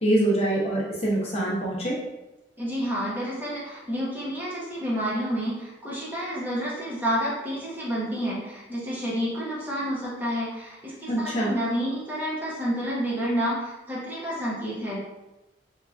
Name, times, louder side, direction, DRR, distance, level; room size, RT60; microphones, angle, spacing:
voice 1, 0.0-2.0 11.1-11.5, right 1 dB, 35° left, -5 dB, 0.8 m, -24 dB
voice 2, 2.6-15.0, equal, 10° right, -7 dB, 0.8 m, -29 dB
3.5 x 2.9 x 2.4 m, 1.0 s
head